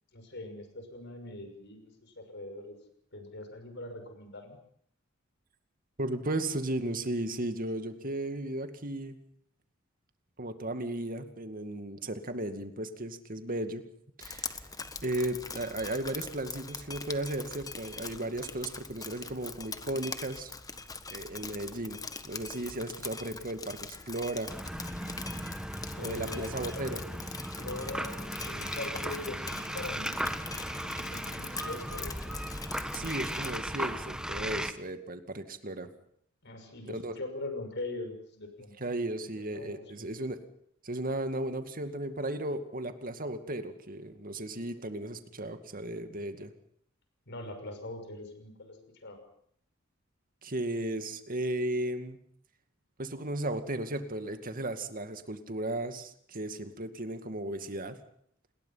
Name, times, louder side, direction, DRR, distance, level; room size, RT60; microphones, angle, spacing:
voice 1, 0.1-2.8 3.1-4.6 25.9-27.2 27.5-32.3 36.4-39.0 39.4-40.1 47.3-49.2, left 2 dB, 60° left, 6 dB, 6.2 m, -42 dB
voice 2, 6.0-9.2 10.4-13.8 14.2-14.6 15.0-20.5 21.1-22.0 22.2-24.5 26.0-27.0 32.9-35.9 36.9-37.2 38.8-40.4 40.8-46.5 50.4-52.2 53.0-58.0, right 1 dB, 45° right, 8 dB, 2.2 m, -35 dB
Drip, 14.2-33.6, left 4 dB, 20° left, 1.4 m, -43 dB
sound 1, 24.5-34.7, equal, 5° right, 1.4 m, -37 dB
28.5 x 20.5 x 5.8 m, 0.66 s
head